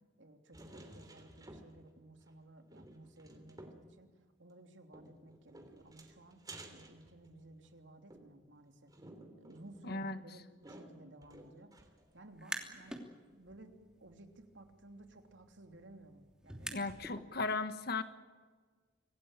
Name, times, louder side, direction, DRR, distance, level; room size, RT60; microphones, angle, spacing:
voice 1, 0.2-6.4 6.7-8.9 9.4-13.0 13.3-17.1, right 2 dB, 90° right, 5 dB, 3.0 m, -57 dB
sound 1, 0.5-2.0 2.3-2.4 2.7-3.9 4.9-7.7 8.1-12.1 12.5-12.6 12.9-13.0, right 1 dB, 20° right, 3.2 m, -55 dB
voice 2, 9.9-10.2 16.7-18.0, left 3 dB, 60° left, 11 dB, 1.5 m, -36 dB
sound 2, 12.2-13.0 13.4-17.2, right 1 dB, 5° right, 2.9 m, -47 dB
26.0 x 18.5 x 9.0 m, 1.5 s
head